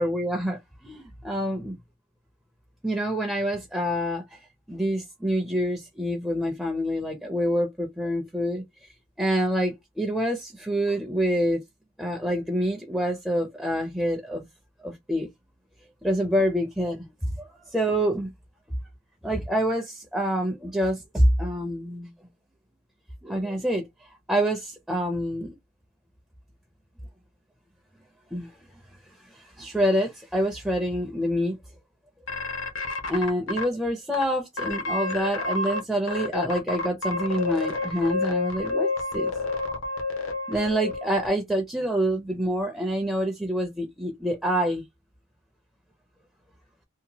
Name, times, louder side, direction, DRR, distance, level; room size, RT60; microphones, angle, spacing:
voice 1, 0.0-1.8 2.8-4.4 4.7-8.6 9.2-11.6 12.0-14.5 14.8-15.3 16.0-17.0 17.4-17.5 17.7-18.3 19.2-22.1 23.2-25.5 28.3-28.5 29.2-31.6 33.1-39.3 40.5-44.8, equal, 5° right, 0.4 m, -26 dB
sound 1, 32.3-33.6 34.1-34.2 34.6-35.8 36.1-41.3, left 3 dB, 80° left, 0.7 m, -29 dB
2.8 x 2.1 x 2.7 m
head